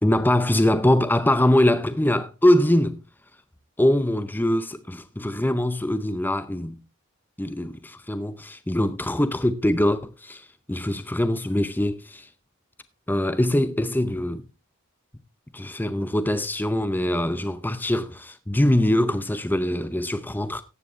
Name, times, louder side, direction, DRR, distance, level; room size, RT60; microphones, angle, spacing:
voice 1, 0.0-3.0 3.8-6.8 7.4-12.3 13.1-14.4 15.5-20.6, left 1 dB, 10° left, 0.6 m, -23 dB
15.0 x 9.7 x 3.2 m
head